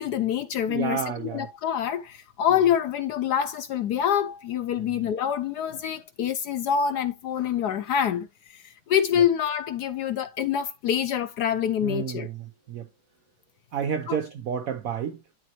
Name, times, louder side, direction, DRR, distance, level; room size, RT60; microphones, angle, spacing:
voice 1, 0.0-12.3 14.1-14.2, left 9 dB, 70° left, 1.0 m, -26 dB
voice 2, 0.7-1.5 4.8-5.1 9.2-9.3 11.8-12.9 13.7-15.2, right 8 dB, 80° right, 0.7 m, -31 dB
11.5 x 4.0 x 2.8 m
omnidirectional pair, 2.2 m